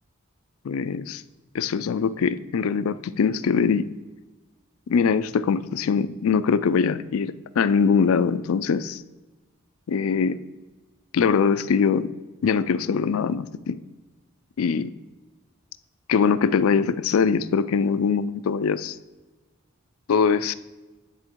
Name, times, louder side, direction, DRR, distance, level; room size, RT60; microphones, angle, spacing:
voice 1, 0.6-1.2 1.5-3.9 4.9-9.0 9.9-10.4 11.1-12.1 12.4-13.8 14.6-14.9 16.1-19.0 20.1-20.5, left 6 dB, 85° left, 13 dB, 0.4 m, -22 dB
10.0 x 3.7 x 4.5 m, 1.2 s
head